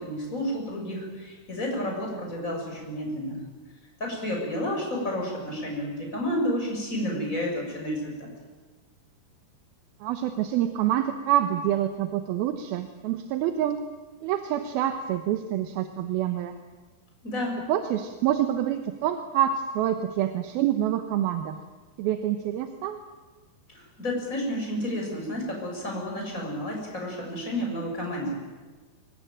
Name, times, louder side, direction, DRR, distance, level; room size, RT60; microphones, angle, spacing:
voice 1, 0.0-3.4 4.0-8.3 17.2-17.6 23.7-28.4, equal, 20° left, 0 dB, 6.8 m, -31 dB
voice 2, 10.0-13.8 14.2-16.5 17.7-21.6 22.0-23.0, right 11 dB, 75° right, 7 dB, 2.8 m, -26 dB
23.5 x 21.5 x 9.1 m, 1.3 s
omnidirectional pair, 4.6 m